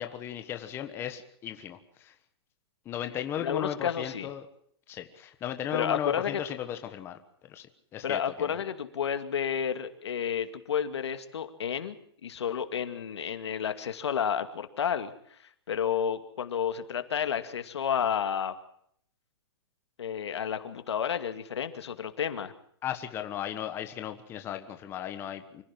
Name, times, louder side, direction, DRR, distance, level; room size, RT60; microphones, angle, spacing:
voice 1, 0.0-2.1 2.8-4.5 4.9-7.7 7.9-8.6 22.8-25.6, left 10 dB, 15° left, 7 dB, 1.3 m, -36 dB
voice 2, 3.4-4.3 5.7-6.4 8.0-12.0 12.2-18.6 20.0-22.5, left 8 dB, 90° left, 9 dB, 2.4 m, -31 dB
25.0 x 16.0 x 7.5 m, 0.66 s
hypercardioid pair, 165°, 14 cm